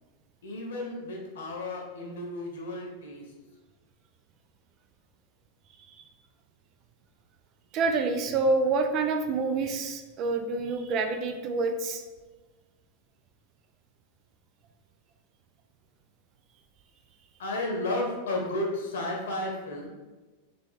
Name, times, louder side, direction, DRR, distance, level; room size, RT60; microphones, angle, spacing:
voice 1, 0.4-3.2 17.4-19.9, left 2 dB, 85° left, -1 dB, 1.3 m, -33 dB
voice 2, 7.7-12.0, right 3 dB, 30° right, 6 dB, 0.4 m, -27 dB
3.5 x 3.3 x 4.1 m, 1.2 s
supercardioid pair, 155°, 0 cm